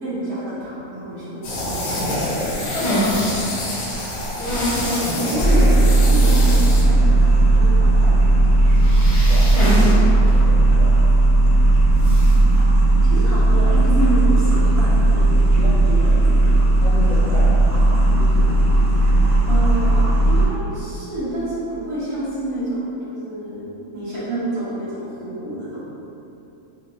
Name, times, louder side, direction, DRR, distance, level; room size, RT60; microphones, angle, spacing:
voice 1, 0.0-1.9 5.0-8.8 13.0-16.4 19.4-23.7 23.9-25.8, right 1 dB, 90° right, -11 dB, 1.7 m, -28 dB
sound 1, 1.4-6.8, left 1 dB, 70° left, 1.1 m, -26 dB
sound 2, 2.6-3.2 4.4-5.1 5.5-5.6 6.0-6.1 8.8-10.0 10.3-10.4 12.0-12.3, left 1 dB, 30° left, 0.7 m, -24 dB
voice 2, 3.0-3.8 9.3-9.8 10.3-10.9 11.4-11.7 15.6-15.8 16.8-17.7 18.2-18.6, equal, 65° right, -10 dB, 1.4 m, -34 dB
sound 3, 5.4-20.4, right 2 dB, 15° right, 0.7 m, -15 dB
4.2 x 3.0 x 2.9 m, 2.8 s
omnidirectional pair, 1.5 m